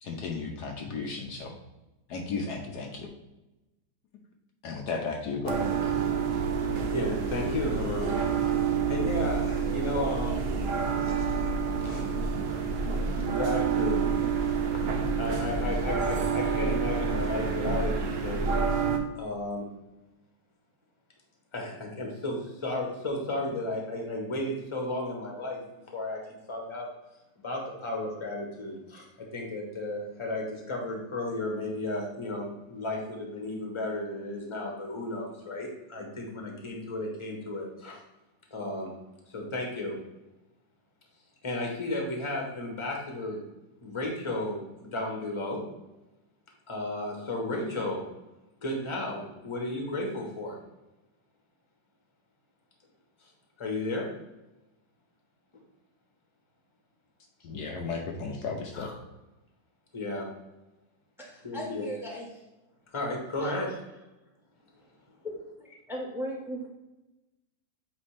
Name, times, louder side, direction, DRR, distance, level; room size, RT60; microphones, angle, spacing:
voice 1, 0.0-1.5 2.1-3.1 4.6-5.6 57.4-58.9, left 4 dB, 70° left, 2 dB, 1.3 m, -34 dB
sound 1, 5.4-19.0, right 5 dB, 55° right, 0.6 m, -28 dB
voice 2, 6.9-8.2 8.4-8.5 8.9-10.4 11.0-11.5 11.8-12.1 13.3-14.0 15.2-18.8 19.1-19.6 21.5-25.6 25.9-26.9 27.4-29.1 29.3-38.0 38.5-38.9 39.3-39.9 41.4-43.4 43.8-45.6 46.7-48.0 48.6-50.6 53.6-54.1 58.7-58.9 59.9-60.2 61.4-61.9 62.9-63.7, left 1 dB, 20° left, 0 dB, 1.1 m, -33 dB
voice 3, 61.2-62.4 63.4-63.6 65.2-65.3 65.6-66.7, equal, ahead, -1 dB, 1.2 m, -37 dB
8.5 x 3.5 x 3.3 m, 1.0 s
omnidirectional pair, 1.9 m